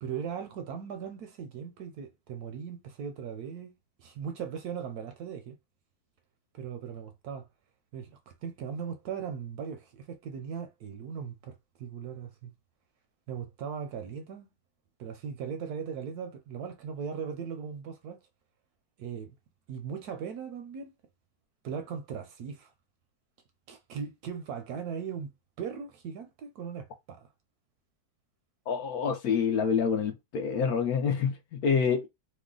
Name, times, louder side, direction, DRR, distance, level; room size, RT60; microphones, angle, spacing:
voice 1, 0.0-5.6 6.5-7.5 7.9-12.5 13.3-14.5 15.0-18.2 19.0-19.3 19.7-20.9 21.6-22.7 23.7-25.3 25.6-27.3, right 7 dB, 70° right, 1.0 m, -38 dB
voice 2, 28.7-32.1, left 6 dB, 70° left, 0.9 m, -27 dB
3.1 x 2.1 x 3.7 m
omnidirectional pair, 1.9 m